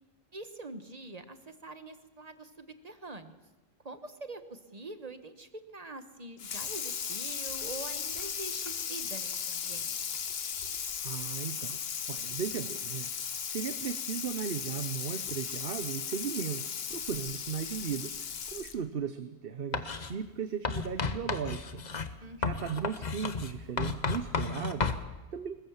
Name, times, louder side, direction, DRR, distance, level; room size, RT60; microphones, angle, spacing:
voice 1, 0.3-3.4 3.8-10.1 22.2-22.8, right 2 dB, 40° right, 10 dB, 1.4 m, -45 dB
Water tap faucet / Sink (filling or washing), 6.4-18.9, left 7 dB, 70° left, 1.2 m, -36 dB
voice 2, 11.0-11.8 12.1-21.8 22.4-25.7, right 7 dB, 60° right, 11 dB, 1.1 m, -37 dB
Writing, 19.7-20.1 20.6-25.0, left 4 dB, 45° left, 1.1 m, -33 dB
21.5 x 20.5 x 7.3 m, 1.1 s
omnidirectional pair, 1.1 m